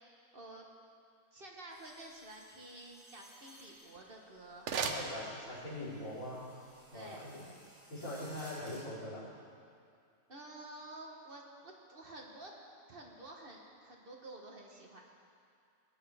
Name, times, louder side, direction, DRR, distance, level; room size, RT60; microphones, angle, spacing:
voice 1, 0.3-0.7 1.3-5.1 6.9-7.3 10.3-12.5 12.9-15.0, right 2 dB, 40° right, -1 dB, 1.3 m, -51 dB
sound 1, 1.7-8.8, equal, 5° right, 3.0 m, -59 dB
sound 2, 3.8-5.9, right 5 dB, 60° right, 1.0 m, -40 dB
voice 2, 4.8-6.5 6.9-7.4 7.9-9.3, left 1 dB, 85° left, -9 dB, 4.1 m, -42 dB
18.5 x 9.4 x 3.4 m, 2.4 s
omnidirectional pair, 1.5 m